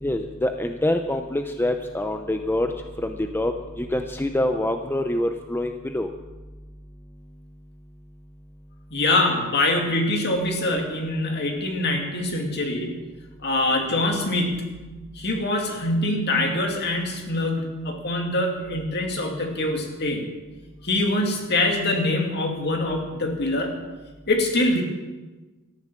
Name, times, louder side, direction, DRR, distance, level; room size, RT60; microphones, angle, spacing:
voice 1, 0.0-2.7 3.0-6.1, left 1 dB, 10° left, 6 dB, 0.6 m, -25 dB
voice 2, 8.9-13.0 13.4-14.8 15.1-20.3 20.8-23.8 24.3-24.8, left 2 dB, 50° left, 2 dB, 2.5 m, -24 dB
14.0 x 10.0 x 7.5 m, 1.2 s
head